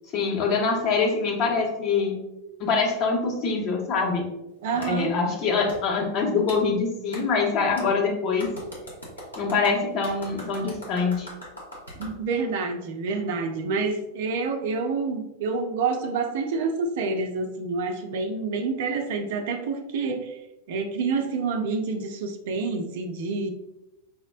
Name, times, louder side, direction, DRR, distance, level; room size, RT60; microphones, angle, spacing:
voice 1, 0.1-2.2 2.6-4.3 4.7-8.5 9.4-11.3, left 4 dB, 35° left, -2 dB, 0.9 m, -24 dB
voice 2, 4.6-5.1 12.0-20.4 20.7-23.5, right 4 dB, 55° right, 6 dB, 0.4 m, -28 dB
Clapping, 4.8-4.9 5.7-5.8 6.5-6.6 7.1-7.2 7.8-7.9 8.4-12.1, equal, 80° left, 1.1 m, -40 dB
5.5 x 2.1 x 2.3 m, 0.97 s
figure-of-eight pair, 90°, 0 cm